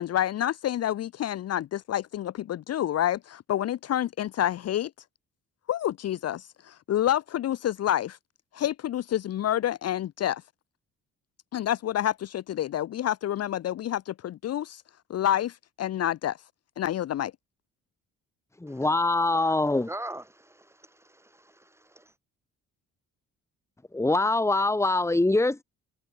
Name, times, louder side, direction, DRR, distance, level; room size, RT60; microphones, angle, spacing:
voice 1, 0.0-4.9 5.7-8.2 8.5-10.4 11.5-14.8 15.1-16.4 16.8-17.3, left 11 dB, 55° left, 0.7 m, -28 dB
voice 2, 18.6-19.9 23.9-25.6, left 2 dB, 10° left, 1.4 m, -24 dB
voice 3, 19.9-22.1, right 1 dB, 10° right, 4.6 m, -42 dB
cardioid pair, 90°, 30 cm